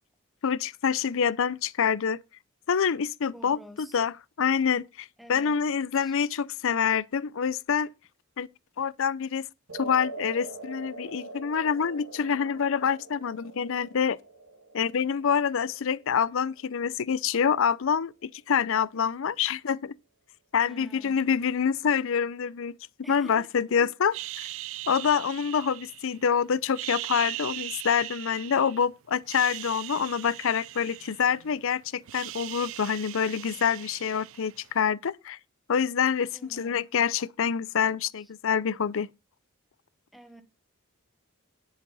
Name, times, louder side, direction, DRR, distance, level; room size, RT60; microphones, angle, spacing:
voice 1, 0.4-2.2 2.7-7.9 8.4-8.5 8.8-9.5 9.7-14.2 14.7-19.9 20.5-22.7 23.1-24.5 24.9-35.4 35.7-39.1, left 7 dB, 65° left, 0.5 m, -26 dB
voice 2, 3.3-4.0 5.2-5.6 6.0-6.1 18.9-19.1 20.6-21.2 23.0-23.9 36.3-36.8 38.2-38.3 40.1-40.4, equal, ahead, 1.3 m, -49 dB
sound 1, 9.7-18.0, right 3 dB, 90° right, 2.4 m, -44 dB
sound 2, 24.1-26.3 26.7-28.9 29.2-31.6 31.9-34.7, right 16 dB, 70° right, 0.4 m, -39 dB
10.0 x 7.5 x 4.1 m
head